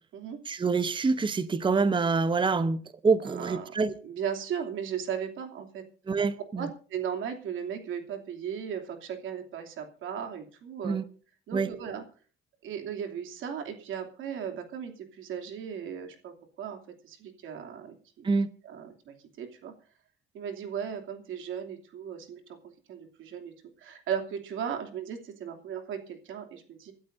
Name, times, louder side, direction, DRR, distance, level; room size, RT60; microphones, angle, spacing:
voice 1, 0.5-3.9 6.1-6.7 10.8-11.0 11.5-11.7 18.2-18.5, right 4 dB, 25° right, 0.9 m, -26 dB
voice 2, 3.2-3.7 4.0-5.8 6.6-11.0 11.5-12.0 12.6-16.8 17.0-18.3 18.6-19.7 20.3-22.4 22.9-23.5 23.8-26.9, right 8 dB, 80° right, 2.8 m, -36 dB
27.0 x 12.5 x 2.7 m
cardioid pair, 90°, 20 cm